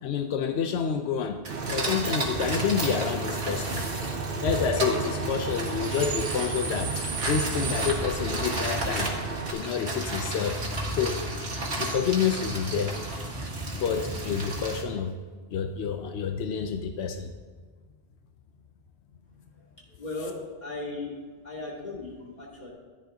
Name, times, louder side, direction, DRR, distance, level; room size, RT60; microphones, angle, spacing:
voice 1, 0.0-1.4 1.7-3.9 4.4-9.1 9.5-10.6 11.0-11.2 11.8-12.9 13.8-15.1 15.5-17.3, left 7 dB, 90° left, 6 dB, 0.9 m, -28 dB
sound 1, 1.4-14.8, right 2 dB, 90° right, 1.9 m, -32 dB
Bus / Idling / Screech, 1.5-9.5, right 4 dB, 60° right, 1.0 m, -34 dB
voice 2, 19.6-21.2 21.4-22.7, left 3 dB, 40° left, -5 dB, 2.7 m, -37 dB
14.0 x 10.5 x 2.8 m, 1.5 s
omnidirectional pair, 1.1 m